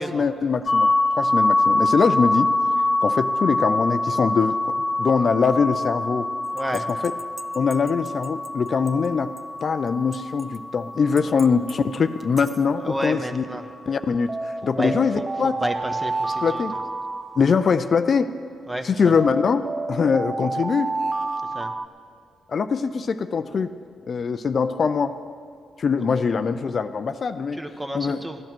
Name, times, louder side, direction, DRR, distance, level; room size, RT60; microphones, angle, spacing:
voice 1, 0.0-2.5 3.0-6.3 6.7-7.1 7.5-9.3 9.6-13.4 13.9-15.6 16.4-16.7 17.4-18.3 18.8-20.9 22.5-23.7 24.1-25.1 25.8-27.6 27.9-28.2, left 5 dB, 55° left, 10 dB, 0.5 m, -22 dB
sound 1, 0.7-12.4, left 2 dB, 30° left, 1.4 m, -25 dB
sound 2, 6.6-8.5 8.9-9.0 9.4-9.5 10.1-10.6 11.2-11.7 12.2-12.6 14.3-18.0 19.2-21.9, right 3 dB, 35° right, 0.5 m, -30 dB
voice 2, 12.8-13.6 14.6-14.9 15.4-16.6 18.7-19.1 21.5-21.7 27.6-28.4, right 1 dB, 15° right, 6 dB, 1.2 m, -30 dB
15.0 x 10.5 x 6.1 m, 2.3 s
supercardioid pair, 60°, 0 cm